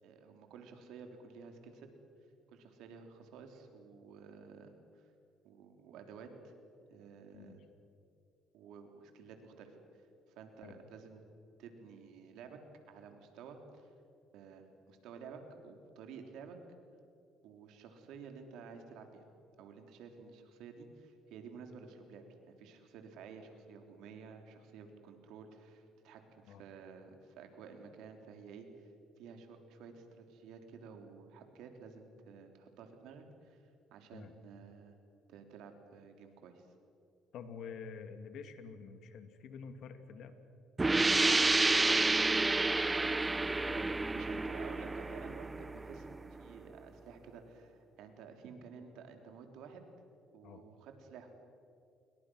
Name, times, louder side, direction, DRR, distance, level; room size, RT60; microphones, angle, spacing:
voice 1, 0.0-1.9 2.5-5.1 5.4-6.5 6.9-7.6 8.5-11.2 11.6-12.6 12.9-13.9 14.3-16.6 17.4-19.2 19.6-28.9 29.2-35.0 35.3-36.7 44.1-49.9 50.3-51.3, right 5 dB, 80° right, 5 dB, 3.5 m, -52 dB
voice 2, 37.3-40.4 43.0-44.4 50.4-50.6, left 6 dB, 65° left, 8 dB, 2.3 m, -49 dB
sound 1, 40.8-46.3, right 3 dB, 15° right, 0.6 m, -30 dB
29.0 x 22.5 x 6.4 m, 2.6 s
cardioid pair, 100°, 0 cm